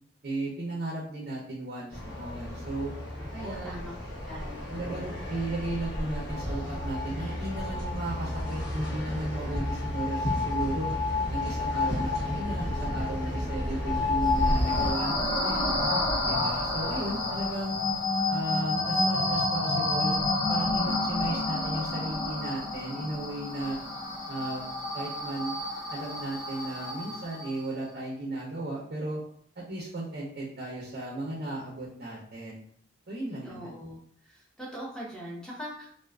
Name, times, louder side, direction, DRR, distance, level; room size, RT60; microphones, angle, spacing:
voice 1, 0.2-2.9 3.3-3.9 4.7-10.9 11.3-15.7 16.2-17.8 18.3-20.2 20.5-23.8 24.3-24.6 24.9-25.6 25.9-29.2 29.6-32.6 33.1-33.8, right 1 dB, 55° right, -4 dB, 0.5 m, -35 dB
sound 1, 1.9-14.9, left 2 dB, 60° left, 0.9 m, -31 dB
voice 2, 3.4-3.9 4.2-5.1 33.4-35.9, equal, 5° left, -5 dB, 0.7 m, -41 dB
sound 2, 14.2-27.6, left 2 dB, 35° left, 0.8 m, -30 dB
2.4 x 2.3 x 2.2 m, 0.62 s
head